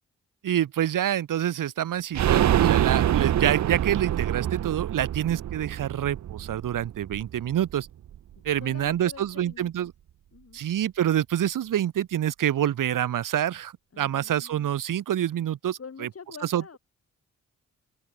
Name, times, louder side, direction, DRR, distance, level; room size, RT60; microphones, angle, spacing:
voice 1, 0.4-7.9 8.4-9.9 10.5-15.8 16.5-16.8, right 11 dB, 80° right, 1.1 m, -27 dB
sound 1, 2.1-7.8 8.1-8.2 8.5-8.6, right 11 dB, 60° right, 0.6 m, -25 dB
voice 2, 8.4-9.9 10.3-10.6 13.9-14.7 15.8-16.8, left 6 dB, 45° left, 5.4 m, -46 dB
open air
cardioid pair, 105°, 32 cm